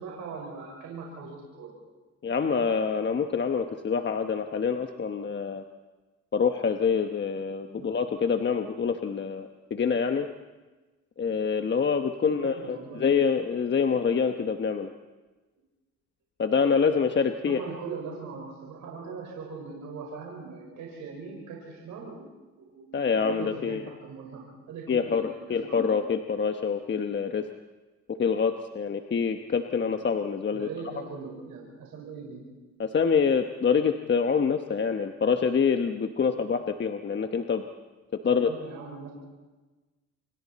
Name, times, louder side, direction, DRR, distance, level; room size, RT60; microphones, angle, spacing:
voice 1, 0.0-1.7 7.8-7.9 12.2-13.1 17.4-22.2 22.6-25.9 30.5-32.4 38.2-39.1, right 5 dB, 85° right, -2 dB, 5.0 m, -41 dB
voice 2, 2.2-5.6 6.3-10.3 11.2-14.9 16.4-17.6 22.9-23.8 24.9-27.5 28.2-30.7 32.8-37.6 38.2-38.5, left 6 dB, 40° left, 6 dB, 1.1 m, -26 dB
27.5 x 24.5 x 4.2 m, 1.2 s
cardioid pair, 90°, 30 cm